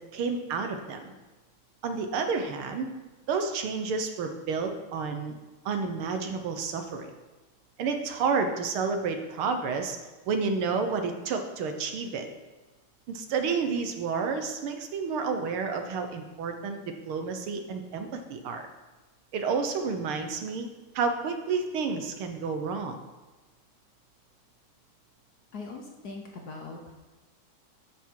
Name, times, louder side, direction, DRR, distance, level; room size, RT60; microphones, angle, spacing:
voice 1, 0.1-1.1 1.8-2.9 3.3-5.4 5.7-7.1 7.8-10.0 10.3-12.3 13.1-16.8 17.1-18.7 19.3-20.7 21.0-23.0, right 5 dB, 75° right, 6 dB, 1.8 m, -30 dB
voice 2, 25.5-26.9, left 3 dB, 55° left, 2 dB, 1.2 m, -41 dB
13.0 x 5.8 x 4.7 m, 1.1 s
omnidirectional pair, 2.4 m